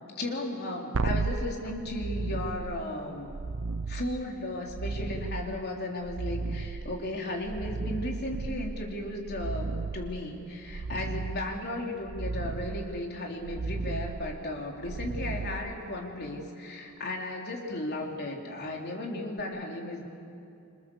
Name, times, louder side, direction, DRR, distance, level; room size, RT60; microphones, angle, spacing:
voice 1, 0.2-3.3 3.9-20.1, left 1 dB, 45° left, 0 dB, 3.8 m, -35 dB
sound 1, 0.9-16.2 19.4-19.5, right 3 dB, 65° right, 0.6 m, -35 dB
27.0 x 26.5 x 7.2 m, 2.7 s
head